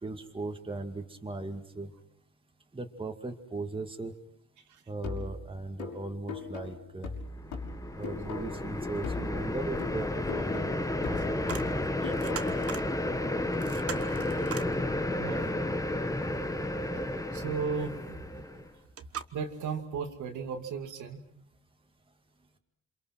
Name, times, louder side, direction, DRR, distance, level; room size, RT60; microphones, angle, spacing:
voice 1, 0.0-1.9 2.7-4.1 4.9-7.1 7.9-12.1, right 3 dB, 15° right, 4 dB, 2.4 m, -38 dB
sound 1, 5.0-8.7 9.0-12.7, left 4 dB, 90° left, 6.2 m, -40 dB
sound 2, 7.3-18.7, left 1 dB, 10° left, 1.5 m, -32 dB
sound 3, 11.5-11.7 12.0-12.9 13.2-13.3 13.5-14.7 18.4-18.5 19.0-19.2, right 7 dB, 50° right, 1.4 m, -40 dB
voice 2, 15.2-16.4 17.3-18.7 19.3-21.2, right 5 dB, 75° right, 4 dB, 2.7 m, -37 dB
28.5 x 26.0 x 6.1 m, 0.70 s
cardioid pair, 90°, 30 cm